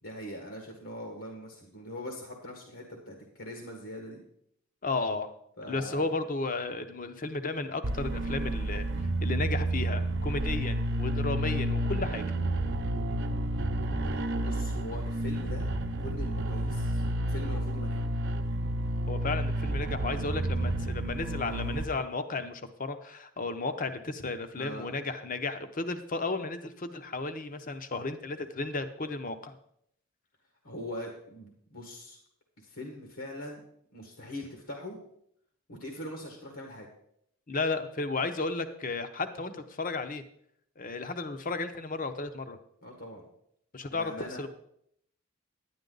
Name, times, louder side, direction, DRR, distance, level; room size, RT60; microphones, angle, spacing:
voice 1, 0.0-4.2 5.6-6.1 14.1-18.0 24.5-24.9 30.6-32.2 32.6-33.6 33.9-35.0 35.7-36.9 42.8-43.2 43.9-44.4, left 1 dB, 75° left, 1 dB, 1.8 m, -42 dB
voice 2, 4.8-5.3 5.7-12.3 19.1-29.5 37.5-40.2 40.8-42.6 43.7-44.1 44.4-44.5, left 3 dB, 40° left, 10 dB, 0.8 m, -34 dB
sound 1, 7.8-21.8, right 1 dB, 55° right, 0.7 m, -30 dB
10.5 x 10.0 x 3.9 m, 0.72 s
head